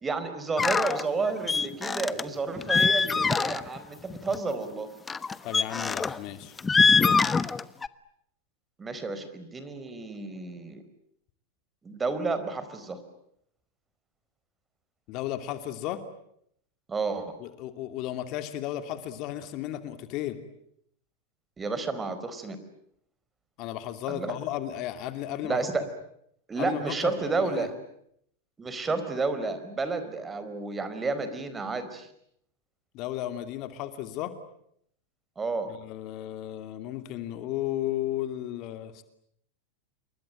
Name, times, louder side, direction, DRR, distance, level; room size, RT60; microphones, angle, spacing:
voice 1, 0.0-4.9 8.8-10.8 11.8-13.0 16.9-17.3 21.6-22.6 24.1-24.4 25.4-25.8 26.5-27.7 28.6-32.1 35.4-35.7, right 3 dB, 20° right, 11 dB, 4.6 m, -31 dB
sound 1, 0.6-1.0 1.5-2.2 2.6-3.8 4.1-4.4 5.1-6.2 6.6-7.9, left 4 dB, 15° left, 1.1 m, -24 dB
voice 2, 5.4-7.2 15.1-16.0 17.4-20.4 23.6-25.6 26.6-27.1 27.4-27.7 32.9-34.3 35.7-39.0, left 13 dB, 50° left, 9 dB, 2.7 m, -34 dB
28.5 x 23.0 x 9.0 m, 0.70 s
hypercardioid pair, 100°, 0 cm